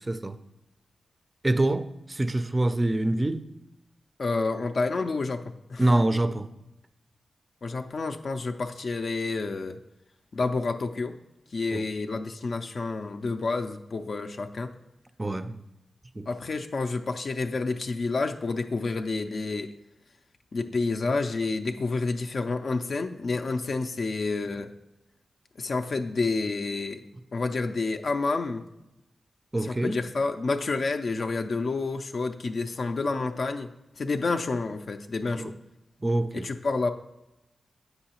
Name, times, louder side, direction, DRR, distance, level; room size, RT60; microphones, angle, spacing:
voice 1, 1.4-3.5 5.8-6.5 11.7-11.8 15.2-15.6 16.2-16.3 29.5-30.0 35.4-35.5 36.0-36.5, right 1 dB, 25° right, 0.4 m, -25 dB
voice 2, 4.2-5.9 7.6-9.8 10.3-11.2 11.5-14.7 16.3-19.7 20.5-24.7 25.6-27.0 27.3-28.7 29.6-35.5 36.3-36.9, left 3 dB, 60° left, 0.3 m, -29 dB
7.8 x 5.5 x 2.9 m
cardioid pair, 75°, 0 cm